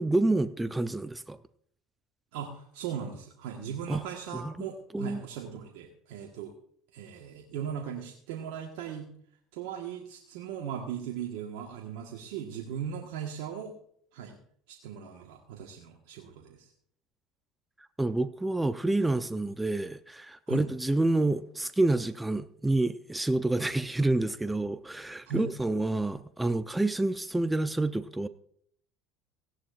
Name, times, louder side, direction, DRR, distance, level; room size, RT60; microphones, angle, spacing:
voice 1, 0.0-1.4 3.9-4.0 4.3-4.7 4.9-5.2 18.0-28.3, right 2 dB, 10° right, 0.6 m, -28 dB
voice 2, 2.3-6.5 6.9-9.1 9.5-13.7 14.1-14.4 14.7-16.7 20.5-20.7 25.3-25.5, right 8 dB, 75° right, 1.5 m, -38 dB
16.5 x 11.5 x 2.6 m
supercardioid pair, 90°, 0 cm